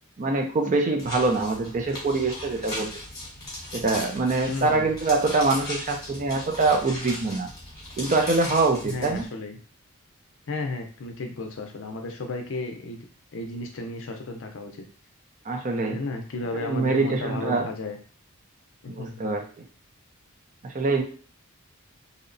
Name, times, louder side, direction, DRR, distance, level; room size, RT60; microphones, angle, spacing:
voice 1, 0.2-2.9 3.7-7.5 8.0-9.3 15.5-16.0 16.5-17.7 19.0-19.4 20.6-21.0, right 3 dB, 35° right, 3 dB, 0.4 m, -24 dB
sound 1, 1.0-9.3, left 1 dB, 15° left, 1.1 m, -38 dB
voice 2, 4.5-4.9 8.8-9.6 10.5-13.1 13.3-14.8 15.9-18.0 18.8-19.3, left 2 dB, 60° left, 4 dB, 0.5 m, -34 dB
2.7 x 2.1 x 2.5 m, 0.40 s
head